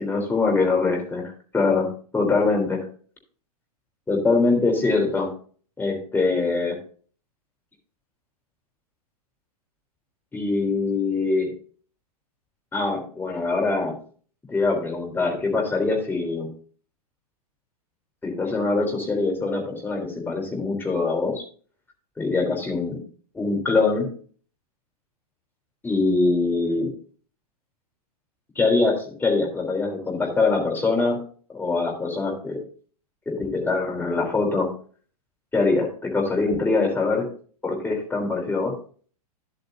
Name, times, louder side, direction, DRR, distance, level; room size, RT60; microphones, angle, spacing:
voice 1, 0.0-1.9 2.1-2.8 4.1-5.3 5.8-6.8 10.3-11.5 12.7-14.0 14.5-16.5 18.2-21.4 22.2-23.0 23.3-24.1 25.8-26.9 28.6-31.2 31.5-32.6 33.3-34.7 35.5-37.3 37.6-38.7, left 3 dB, 10° left, 1 dB, 3.7 m, -23 dB
11.0 x 8.2 x 2.7 m, 0.42 s
hypercardioid pair, 110°, 20 cm